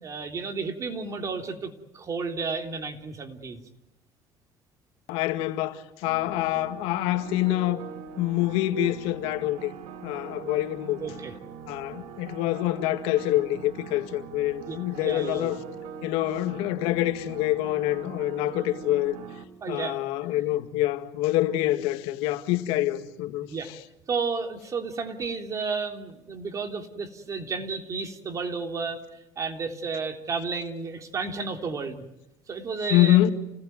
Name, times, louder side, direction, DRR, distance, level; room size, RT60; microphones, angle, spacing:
voice 1, 0.0-1.7 1.9-3.6 11.0-11.4 14.7-14.8 15.0-15.5 19.6-20.0 20.3-20.5 23.5-23.7 24.1-29.0 29.4-32.0 32.5-33.2, right 4 dB, 35° right, 3.5 m, -32 dB
voice 2, 5.1-7.8 8.2-9.7 10.0-11.1 11.7-15.6 16.0-19.2 19.7-23.5 32.9-33.4, left 14 dB, 90° left, 2.0 m, -26 dB
sound 1, 6.0-19.4, right 6 dB, 85° right, 3.2 m, -42 dB
28.5 x 19.0 x 9.5 m
cardioid pair, 125°, 9 cm